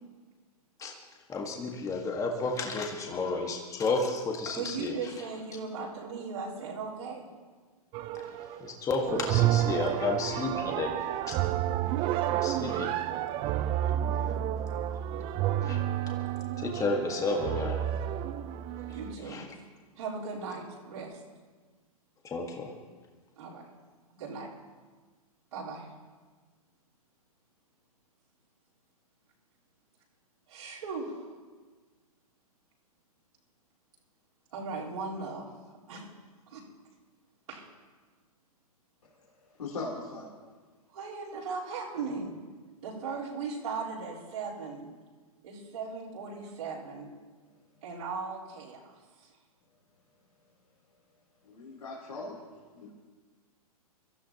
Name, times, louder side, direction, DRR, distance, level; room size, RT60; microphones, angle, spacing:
voice 1, 1.3-5.1 8.6-10.9 11.3-11.4 12.3-12.9 15.6-15.8 16.6-17.8 19.3-19.4 22.2-22.7, left 3 dB, 15° left, 0 dB, 1.6 m, -31 dB
voice 2, 4.5-7.3 18.9-19.5 20.0-21.2 23.4-23.6 24.2-24.5 25.5-25.9 30.5-31.4 34.5-35.5 35.9-36.1 36.5-36.6 37.5-37.7 40.9-42.3 42.8-44.9 45.4-47.1 47.8-49.3, right 4 dB, 65° right, -8 dB, 3.9 m, -38 dB
sound 1, 7.9-8.7 9.1-19.1, right 12 dB, 25° right, 0.5 m, -30 dB
voice 3, 39.6-40.3 51.4-52.4 52.7-52.9, left 3 dB, 75° left, -4 dB, 3.4 m, -39 dB
24.0 x 14.5 x 2.9 m, 1.4 s
hypercardioid pair, 115°, 20 cm